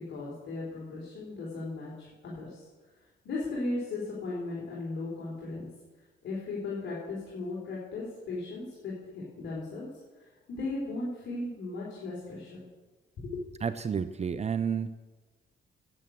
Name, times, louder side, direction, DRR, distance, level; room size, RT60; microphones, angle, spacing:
voice 1, 0.1-2.7 3.2-5.7 6.2-8.9 9.4-9.9 10.5-12.7 13.2-13.4, left 2 dB, 65° left, -6 dB, 4.0 m, -36 dB
voice 2, 13.6-14.9, right 7 dB, 35° right, 12 dB, 0.6 m, -30 dB
11.0 x 7.9 x 8.6 m, 1.3 s
cardioid pair, 90°, 20 cm